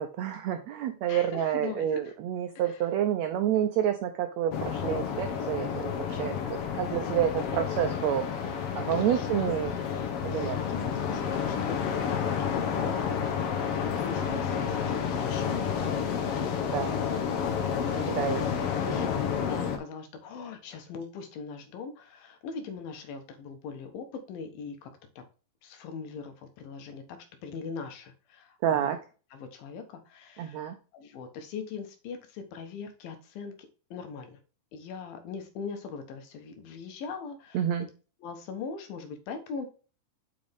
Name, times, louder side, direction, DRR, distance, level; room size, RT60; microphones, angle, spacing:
voice 1, 0.0-8.2 8.7-9.7 10.2-10.6 16.7-16.9 18.1-18.4 28.6-29.0 30.4-30.7 37.5-37.9, right 10 dB, 85° right, 7 dB, 1.5 m, -29 dB
voice 2, 1.1-2.2 2.6-2.9 7.1-7.2 8.9-9.5 10.2-16.8 17.2-18.4 18.8-25.2 25.6-28.9 29.3-34.4 34.7-37.7 38.2-39.7, left 5 dB, 85° left, 7 dB, 3.0 m, -41 dB
sound 1, 4.5-19.8, left 7 dB, 70° left, 1.4 m, -30 dB
7.7 x 5.1 x 3.5 m, 0.36 s
omnidirectional pair, 4.0 m